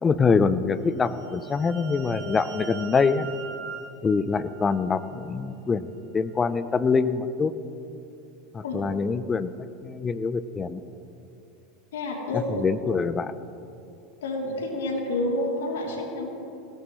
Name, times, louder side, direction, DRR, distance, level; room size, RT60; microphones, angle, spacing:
voice 1, 0.0-3.3 4.0-5.9 6.1-7.5 8.5-9.5 9.8-10.8 12.3-13.3, left 5 dB, 25° left, 14 dB, 0.7 m, -24 dB
sound 1, 0.8-5.3, right 7 dB, 60° right, 4.2 m, -41 dB
voice 2, 11.9-12.6 14.2-16.3, left 2 dB, 85° left, -1 dB, 3.4 m, -29 dB
21.5 x 18.5 x 3.3 m, 2.7 s
hypercardioid pair, 105°, 0 cm